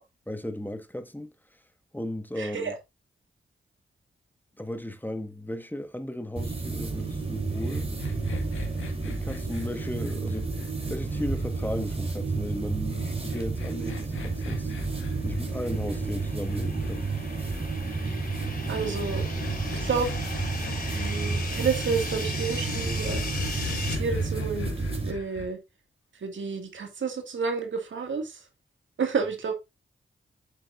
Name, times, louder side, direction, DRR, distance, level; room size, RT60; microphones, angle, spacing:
voice 1, 0.3-1.3 1.9-2.7 4.6-7.9 9.0-10.5 10.9-14.7 15.2-17.1, left 1 dB, 10° left, 1.5 m, -35 dB
voice 2, 2.4-2.7 18.1-18.2 18.7-19.2 19.8-20.1 20.9-23.2 23.9-25.6 26.2-28.4 29.0-29.5, right 5 dB, 75° right, 2.1 m, -30 dB
sound 1, 6.4-25.1, right 3 dB, 30° right, 3.4 m, -31 dB
sound 2, 7.5-11.9 12.9-17.0 18.3-21.1 22.7-25.5, left 4 dB, 80° left, 1.8 m, -39 dB
sound 3, 15.0-24.0, left 3 dB, 45° left, 5.2 m, -38 dB
8.3 x 7.4 x 2.5 m
supercardioid pair, 40°, 20 cm